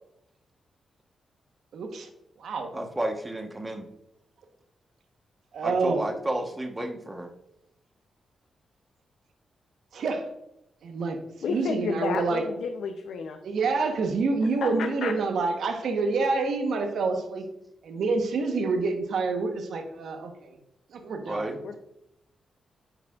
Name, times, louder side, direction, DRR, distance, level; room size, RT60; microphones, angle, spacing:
voice 1, 1.7-2.1 2.4-2.7 5.5-6.0 9.9-10.3 10.8-11.2 11.5-12.4 13.4-17.4 17.8-20.6 20.9-21.6, right 4 dB, 80° right, 5 dB, 1.0 m, -27 dB
voice 2, 2.7-3.8 5.6-7.3 21.3-21.5, right 1 dB, 20° right, 4 dB, 1.1 m, -31 dB
voice 3, 11.4-13.4 14.6-15.1 21.6-21.8, left 5 dB, 85° left, 5 dB, 0.5 m, -31 dB
8.7 x 4.9 x 2.3 m, 0.83 s
cardioid pair, 85°, 0 cm